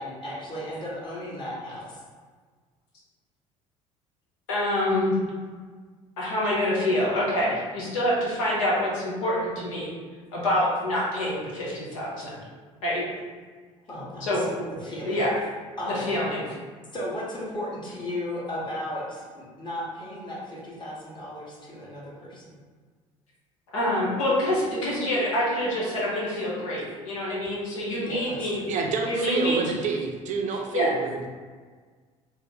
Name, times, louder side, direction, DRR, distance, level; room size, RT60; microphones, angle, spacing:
voice 1, 0.0-2.0 13.9-14.4 14.8-15.3 15.8-16.1 16.9-22.6 27.9-28.7, left 1 dB, 25° left, -5 dB, 1.3 m, -35 dB
voice 2, 4.5-5.1 6.2-9.9 10.3-12.3 12.8-13.0 14.2-14.4 15.1-15.3 16.0-16.4 23.7-28.6 29.0-29.6 30.7-30.9, left 1 dB, 70° left, -6 dB, 1.0 m, -26 dB
voice 3, 28.7-31.3, right 4 dB, 45° right, 1 dB, 0.5 m, -28 dB
3.3 x 2.0 x 4.0 m, 1.5 s
figure-of-eight pair, 60°, 17 cm